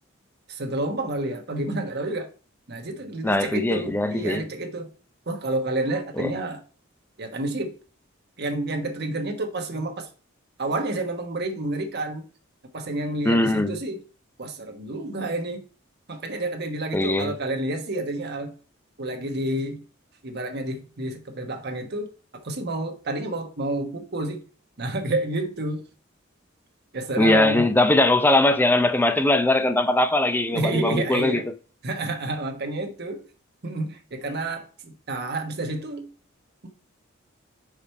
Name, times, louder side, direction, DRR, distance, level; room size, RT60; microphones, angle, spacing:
voice 1, 0.5-2.3 2.7-4.9 5.3-6.6 7.2-7.8 8.4-10.1 10.6-12.2 12.7-14.0 14.4-15.6 16.1-18.5 19.0-19.8 20.2-22.1 22.3-24.4 24.8-25.8 26.9-27.6 30.5-31.5 31.8-33.2 33.6-36.1, right 2 dB, 55° right, 1.2 m, -29 dB
voice 2, 3.2-4.4 6.2-6.3 13.2-13.8 16.9-17.3 27.2-31.5, left 1 dB, 10° left, 0.6 m, -21 dB
5.0 x 4.9 x 4.4 m
head